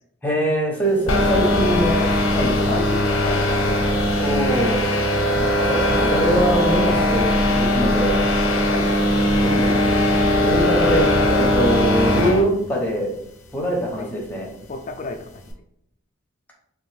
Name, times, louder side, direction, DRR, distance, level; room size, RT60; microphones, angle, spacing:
voice 1, 0.2-2.8 4.2-4.8 5.6-8.2 9.4-9.7 10.4-13.1 13.5-14.5, equal, 10° left, -2 dB, 0.6 m, -23 dB
sound 1, 1.1-12.5, left 1 dB, 85° left, 0.6 m, -19 dB
voice 2, 2.6-4.1 8.6-8.9 10.7-11.0 14.0-14.1 14.7-15.5, left 2 dB, 35° left, 6 dB, 0.3 m, -33 dB
3.3 x 2.5 x 3.2 m, 0.77 s
head